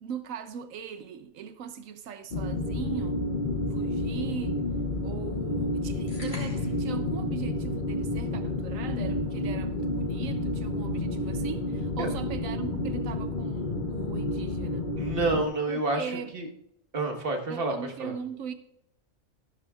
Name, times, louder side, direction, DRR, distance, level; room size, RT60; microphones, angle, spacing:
voice 1, 0.0-3.2 3.7-4.6 5.0-14.9 15.7-16.3 17.5-18.5, right 7 dB, 90° right, 1.1 m, -40 dB
sound 1, 2.3-15.4, left 2 dB, 40° left, 1.0 m, -30 dB
sound 2, 6.1-6.9, left 1 dB, 25° left, 4.6 m, -44 dB
voice 2, 15.0-16.5 16.9-18.1, right 2 dB, 45° right, 1.6 m, -29 dB
14.0 x 12.0 x 2.4 m
omnidirectional pair, 1.3 m